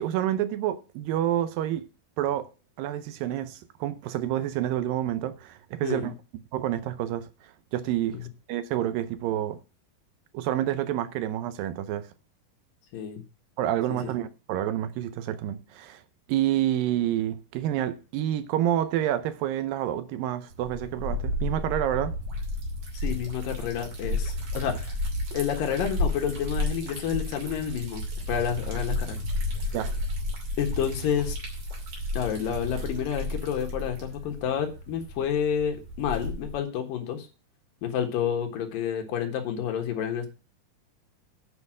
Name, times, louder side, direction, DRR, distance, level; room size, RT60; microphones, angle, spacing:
voice 1, 0.0-1.9 2.2-2.5 2.8-6.1 6.5-7.3 7.7-8.2 8.5-9.6 10.3-12.1 13.6-16.0 16.3-22.1 29.7-29.9, right 12 dB, 80° right, 2.3 m, -28 dB
voice 2, 12.9-13.2 14.0-14.1 22.9-24.9 25.3-29.2 29.7-29.8 30.6-31.4 32.1-37.3 37.8-40.3, left 8 dB, 70° left, 3.0 m, -29 dB
Liquid, 20.5-36.6, left 1 dB, 50° right, 3.8 m, -32 dB
9.5 x 5.5 x 7.3 m
omnidirectional pair, 4.2 m